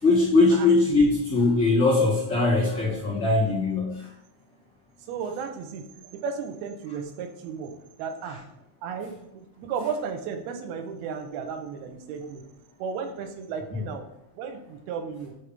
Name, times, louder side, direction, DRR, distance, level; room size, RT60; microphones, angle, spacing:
voice 1, 0.0-4.0, left 3 dB, 40° left, -8 dB, 1.9 m, -21 dB
voice 2, 5.1-8.4 8.8-12.4 12.8-14.1 14.4-15.3, right 6 dB, 85° right, 6 dB, 2.8 m, -34 dB
8.6 x 3.4 x 5.3 m, 0.85 s
omnidirectional pair, 4.4 m